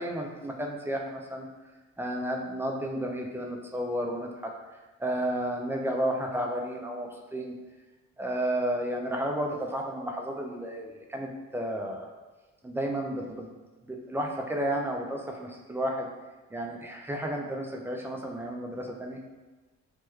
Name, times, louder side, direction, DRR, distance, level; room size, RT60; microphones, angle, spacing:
voice 1, 0.0-1.5 2.0-4.5 5.0-7.5 8.2-12.1 12.6-13.5 13.8-16.1 16.5-19.2, right 1 dB, 10° right, 1 dB, 0.4 m, -32 dB
3.3 x 2.2 x 3.0 m, 1.2 s
cardioid pair, 90°, 30 cm